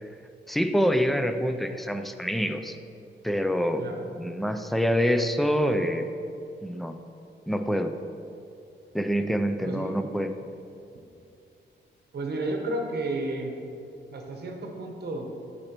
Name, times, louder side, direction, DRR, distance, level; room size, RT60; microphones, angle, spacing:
voice 1, 0.5-2.8 3.2-3.8 4.1-6.1 6.6-7.0 7.5-7.9 8.9-10.3, equal, ahead, 7 dB, 0.3 m, -26 dB
voice 2, 9.6-9.9 12.1-13.6 14.1-15.3, right 2 dB, 60° right, 2 dB, 0.9 m, -32 dB
11.5 x 4.3 x 3.0 m, 2.6 s
wide cardioid pair, 120°, 19 cm